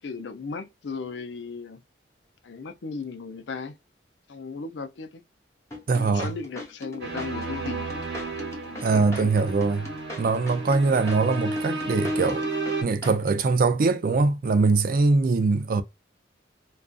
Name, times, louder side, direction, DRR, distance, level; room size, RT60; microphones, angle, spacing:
voice 1, 0.0-1.8 2.4-3.8 4.3-5.2 6.0-7.9 8.6-9.5, left 4 dB, 70° left, 0.5 m, -36 dB
sound 1, 5.7-13.5, left 1 dB, 15° left, 0.9 m, -40 dB
voice 2, 5.9-6.3 8.8-9.9 10.2-12.4 12.8-15.8, right 3 dB, 50° right, 0.3 m, -22 dB
sound 2, 7.0-12.8, right 2 dB, 65° right, 1.1 m, -32 dB
2.5 x 2.4 x 2.3 m
head